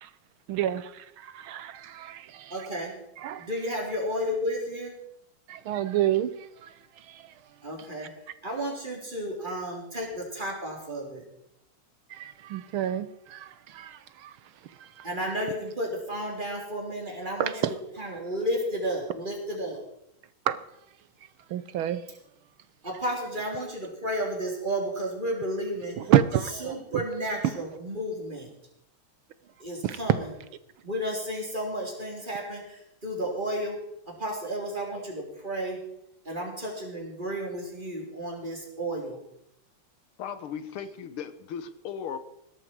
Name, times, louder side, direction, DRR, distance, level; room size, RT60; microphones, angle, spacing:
voice 1, 0.5-2.7 3.2-3.5 5.5-7.6 12.1-15.1 17.4-17.7 20.5-20.6 21.5-22.1 26.0-27.0 29.8-30.0, right 11 dB, 80° right, 1.6 m, -29 dB
voice 2, 2.5-2.9 3.4-4.9 7.6-8.1 8.4-11.2 15.0-17.5 18.0-19.8 22.8-26.0 26.6-28.5 29.6-30.3 30.8-33.8 34.2-35.8 36.2-39.2, equal, 20° right, 4.2 m, -32 dB
voice 3, 40.2-42.2, left 7 dB, 85° left, 2.0 m, -36 dB
18.0 x 13.0 x 4.7 m
omnidirectional pair, 2.3 m